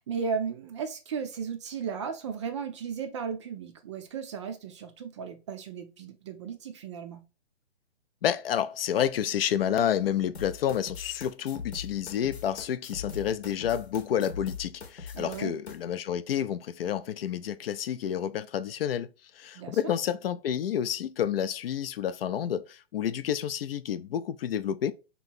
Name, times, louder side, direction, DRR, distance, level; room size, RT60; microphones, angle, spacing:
voice 1, 0.0-7.2 15.1-15.6 19.5-19.8, right 6 dB, 30° right, 0.4 m, -35 dB
voice 2, 8.2-19.1 19.3-24.9, left 9 dB, 65° left, 0.5 m, -29 dB
sound 1, 10.3-15.8, left 5 dB, 85° left, 0.9 m, -41 dB
3.0 x 2.7 x 4.3 m
hypercardioid pair, 135°, 32 cm